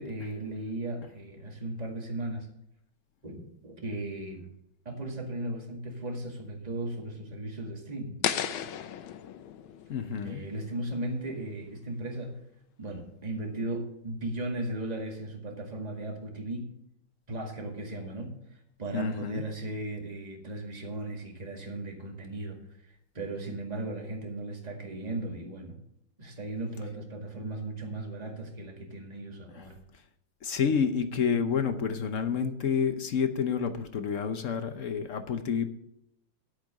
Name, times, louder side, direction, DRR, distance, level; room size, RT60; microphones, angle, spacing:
voice 1, 0.0-2.5 3.2-4.4 4.9-8.2 10.2-12.3 12.8-16.7 17.3-18.3 18.8-25.7 26.2-29.8, right 2 dB, 20° right, 1 dB, 2.0 m, -36 dB
sound 1, 8.2-11.3, left 10 dB, 80° left, 1.6 m, -35 dB
voice 2, 9.9-10.4 18.9-19.4 29.6-29.7 30.4-35.7, left 6 dB, 60° left, 9 dB, 0.8 m, -29 dB
10.5 x 8.3 x 6.5 m, 0.77 s
omnidirectional pair, 2.2 m